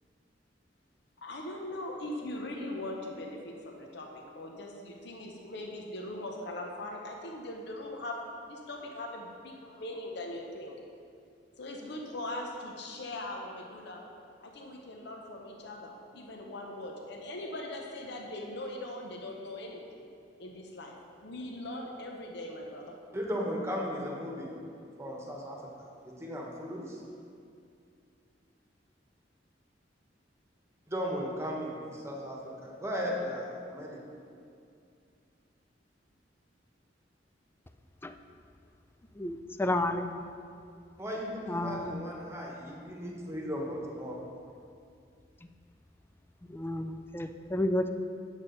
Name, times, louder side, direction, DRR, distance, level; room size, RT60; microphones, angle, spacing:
voice 1, 1.2-10.8 11.6-14.0 14.4-20.0 20.4-21.0 21.2-22.9, left 1 dB, 65° left, 1 dB, 0.8 m, -40 dB
voice 2, 23.1-24.5 25.0-25.7 26.0-27.0 30.9-34.0 41.0-44.2, equal, 15° right, -2 dB, 1.2 m, -36 dB
voice 3, 39.2-40.0 41.5-41.9 46.5-47.9, left 1 dB, 10° left, 7 dB, 0.4 m, -31 dB
8.7 x 7.3 x 3.9 m, 2.4 s
head